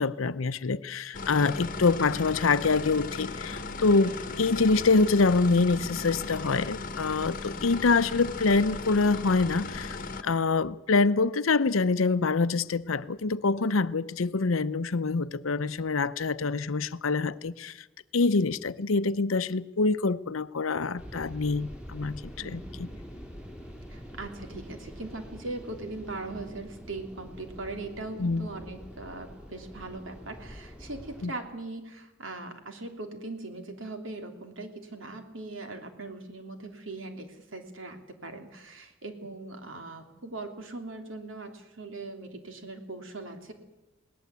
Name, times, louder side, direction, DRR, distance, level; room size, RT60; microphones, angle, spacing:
voice 1, 0.0-10.0 10.2-17.7 18.1-22.9 28.2-28.5 31.2-31.3, left 4 dB, 80° left, 0.7 m, -25 dB
sound 1, 1.1-10.2, left 3 dB, 45° left, 1.2 m, -37 dB
sound 2, 21.0-31.3, equal, 5° right, 3.2 m, -45 dB
voice 2, 22.4-22.9 23.9-43.5, right 2 dB, 70° right, 2.9 m, -40 dB
21.0 x 18.0 x 8.2 m
head